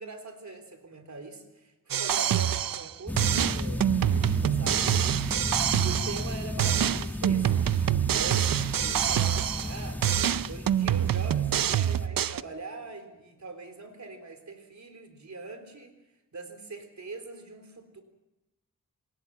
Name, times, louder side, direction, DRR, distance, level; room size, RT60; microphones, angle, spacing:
voice 1, 0.0-4.9 5.8-7.6 8.1-10.1 10.5-15.9 16.3-18.0, right 3 dB, 55° right, 6 dB, 3.7 m, -42 dB
sound 1, 1.9-2.9 3.2-6.3 6.6-9.8 10.0-12.4, right 10 dB, 80° right, 0.7 m, -26 dB
sound 2, 3.1-12.1, left 1 dB, 5° left, 1.7 m, -34 dB
26.0 x 19.0 x 7.4 m, 1.0 s
wide cardioid pair, 85°, 33 cm